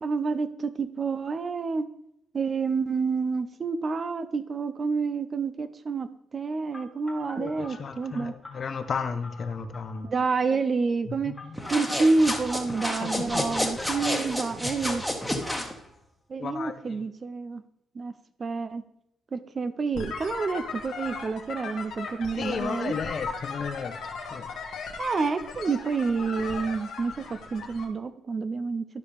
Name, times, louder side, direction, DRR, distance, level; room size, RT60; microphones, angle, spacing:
voice 1, 0.0-1.9 2.3-8.3 10.0-11.3 11.7-15.0 16.3-17.6 17.9-18.1 18.4-18.8 19.3-22.9 25.0-28.9, right 4 dB, 40° right, 12 dB, 0.5 m, -28 dB
Telephone, 6.7-10.1 11.3-12.9 13.4-15.0, left 2 dB, 15° left, 1.5 m, -44 dB
voice 2, 7.4-10.1 11.3-11.5 13.0-13.4 16.4-17.0 22.4-23.9 24.3-24.5, left 5 dB, 50° left, 10 dB, 0.8 m, -33 dB
sound 1, 11.5-15.7, left 1 dB, 5° right, 1.4 m, -30 dB
sound 2, 19.9-27.8, left 5 dB, 75° left, 1.5 m, -37 dB
12.0 x 5.0 x 3.4 m, 0.77 s
cardioid pair, 90°, 0 cm